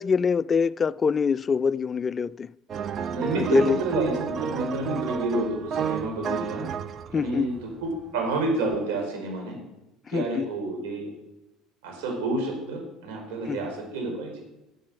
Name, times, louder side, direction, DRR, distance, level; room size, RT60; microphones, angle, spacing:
voice 1, 0.0-2.5 3.4-3.8 4.9-5.0 6.4-6.5 7.1-7.5 10.1-10.5 13.5-13.7, left 6 dB, 30° left, 0.4 m, -25 dB
sound 1, 2.7-8.1 8.7-8.8, right 7 dB, 40° right, 0.7 m, -31 dB
voice 2, 3.0-6.6 7.2-7.5 7.8-9.6 10.1-11.1 11.8-14.3, right 2 dB, 85° right, 5.1 m, -29 dB
14.5 x 7.7 x 7.7 m
supercardioid pair, 105°, 0 cm